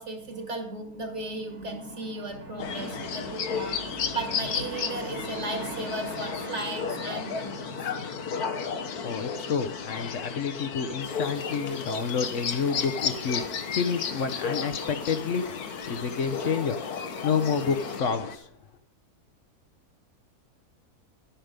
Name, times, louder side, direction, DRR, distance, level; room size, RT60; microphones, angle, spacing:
voice 1, 0.0-8.0, right 2 dB, 50° right, 4 dB, 2.3 m, -35 dB
sound 1, 2.6-18.4, left 6 dB, 80° left, 1.5 m, -33 dB
voice 2, 9.0-13.4 13.7-15.4 15.9-16.8 17.2-18.5, left 6 dB, 60° left, 9 dB, 1.1 m, -29 dB
sound 2, 11.0-18.0, left 4 dB, 30° left, 0.8 m, -44 dB
12.0 x 8.9 x 5.1 m, 0.72 s
omnidirectional pair, 1.6 m